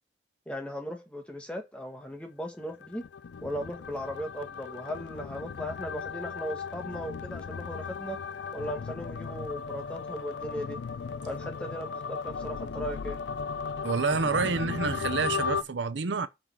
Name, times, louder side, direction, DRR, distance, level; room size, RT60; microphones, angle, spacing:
voice 1, 0.5-3.0 3.4-8.2 8.5-10.8 11.3-13.2, equal, 5° left, 1.4 m, -37 dB
sound 1, 2.7-15.6, left 5 dB, 75° left, 0.4 m, -36 dB
voice 2, 13.8-16.3, right 4 dB, 80° right, 0.7 m, -28 dB
7.2 x 3.9 x 6.3 m
head